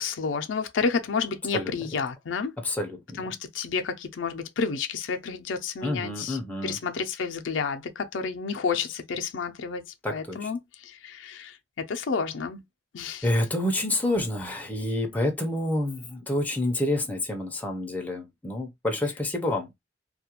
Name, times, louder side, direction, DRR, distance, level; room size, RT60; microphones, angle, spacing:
voice 1, 0.0-2.5 3.2-9.8 10.1-12.6 12.9-13.3, left 5 dB, 80° left, 0.4 m, -30 dB
voice 2, 2.6-3.2 5.8-6.8 10.0-10.5 13.2-19.7, left 1 dB, 10° left, 0.5 m, -28 dB
2.3 x 2.1 x 2.8 m
head